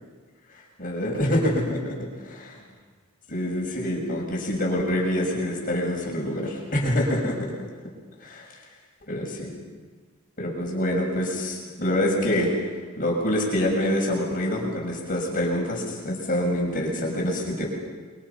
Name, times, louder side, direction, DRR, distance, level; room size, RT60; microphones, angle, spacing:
voice 1, 0.8-1.9 2.2-2.6 3.3-7.4 8.2-8.5 9.1-9.5 10.4-12.5 13.0-17.7, left 1 dB, 40° left, -1 dB, 6.6 m, -26 dB
28.5 x 24.5 x 5.8 m, 1.5 s
head